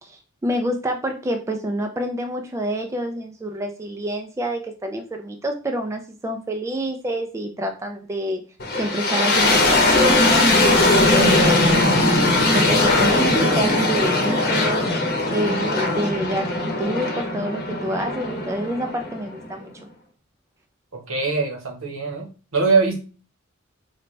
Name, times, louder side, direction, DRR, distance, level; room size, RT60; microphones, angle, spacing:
voice 1, 0.0-8.4 8.8-19.7, right 1 dB, 15° right, 4 dB, 0.3 m, -27 dB
sound 1, 8.6-19.5, left 2 dB, 45° left, 0.8 m, -19 dB
voice 2, 20.9-23.0, right 4 dB, 75° right, 2 dB, 0.9 m, -22 dB
3.9 x 2.2 x 3.0 m, 0.35 s
head